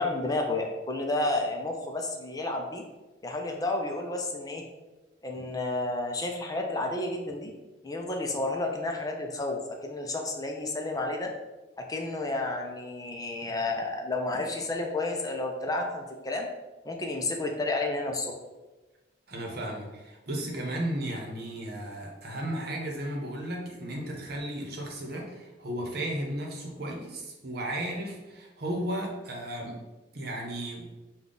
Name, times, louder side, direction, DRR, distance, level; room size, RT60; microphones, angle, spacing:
voice 1, 0.0-2.8 3.2-4.6 5.2-7.5 7.8-11.3 11.8-16.5 16.8-18.3, left 2 dB, 20° left, 2 dB, 0.5 m, -31 dB
voice 2, 19.3-29.8 30.1-30.9, right 1 dB, 60° right, 0 dB, 0.9 m, -34 dB
5.5 x 2.3 x 3.8 m, 1.1 s
head